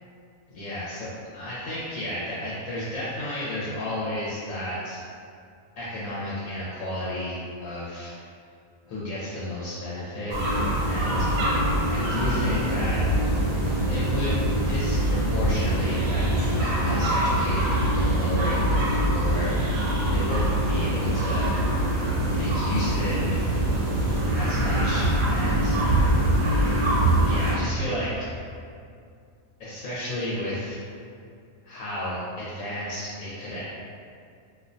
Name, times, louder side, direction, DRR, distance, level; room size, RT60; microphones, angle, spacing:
voice 1, 0.5-1.1 1.3-5.0 5.8-8.1 8.9-10.4 10.8-11.3 11.9-13.0 13.9-14.4 14.7-19.8 20.1-21.5 22.3-23.2 24.3-25.8 27.3-28.3 29.6-30.8 31.6-33.6, left 1 dB, 75° left, -8 dB, 0.9 m, -32 dB
sound 1, 10.3-27.5, right 1 dB, 75° right, 1.0 m, -23 dB
2.5 x 2.1 x 2.5 m, 2.3 s
omnidirectional pair, 1.4 m